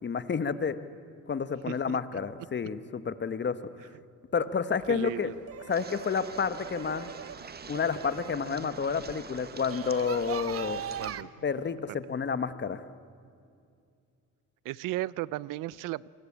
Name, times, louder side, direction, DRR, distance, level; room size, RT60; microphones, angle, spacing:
voice 1, 0.0-0.8 1.3-3.6 4.3-5.3 5.7-7.1 7.7-10.8 11.4-12.8, left 6 dB, 35° left, 13 dB, 1.3 m, -30 dB
voice 2, 1.7-2.0 4.9-5.3 11.0-11.3 14.6-16.1, right 16 dB, 85° right, 22 dB, 0.6 m, -35 dB
sound 1, 4.8-11.2, right 9 dB, 50° right, 0.8 m, -41 dB
sound 2, 5.7-11.2, right 5 dB, 30° right, 1.4 m, -46 dB
27.5 x 21.5 x 8.7 m, 2.4 s
cardioid pair, 100°, 32 cm